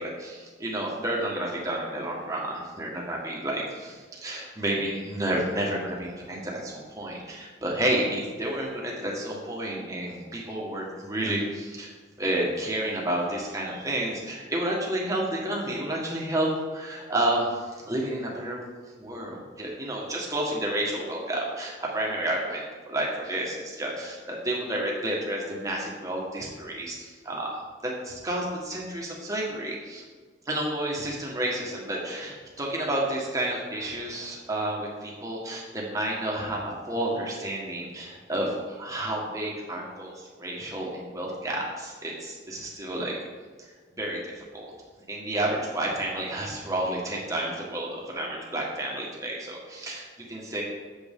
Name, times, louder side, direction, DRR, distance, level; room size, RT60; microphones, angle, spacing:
voice 1, 0.0-11.9 12.2-18.6 19.0-27.5 27.8-30.0 30.5-43.1 43.6-43.7 44.0-44.7 45.1-50.6, right 1 dB, 20° right, -3 dB, 1.5 m, -30 dB
7.9 x 7.5 x 3.7 m, 1.5 s
head